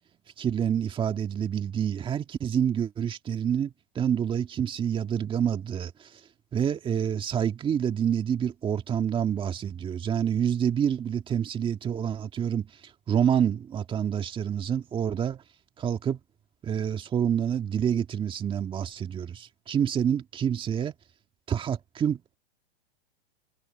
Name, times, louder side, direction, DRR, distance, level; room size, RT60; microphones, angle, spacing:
voice 1, 0.4-5.9 6.5-12.7 13.1-15.4 15.8-16.2 16.6-20.9 21.5-22.4, right 8 dB, 15° right, 1.8 m, -27 dB
hypercardioid pair, 150°, 32 cm